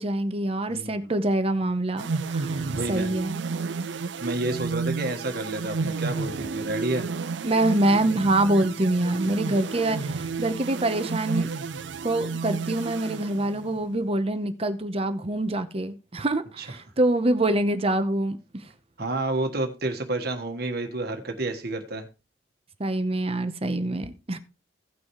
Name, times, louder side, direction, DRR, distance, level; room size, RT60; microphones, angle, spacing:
voice 1, 0.0-2.6 2.9-3.4 7.4-11.5 12.0-18.4 22.8-24.4, right 1 dB, 35° right, 0.9 m, -25 dB
voice 2, 0.7-1.1 2.7-3.2 4.2-7.1 16.6-16.7 19.0-22.1, right 2 dB, 60° right, 1.5 m, -30 dB
sound 1, 2.0-13.8, right 4 dB, 80° right, 0.6 m, -32 dB
16.5 x 6.1 x 3.1 m
head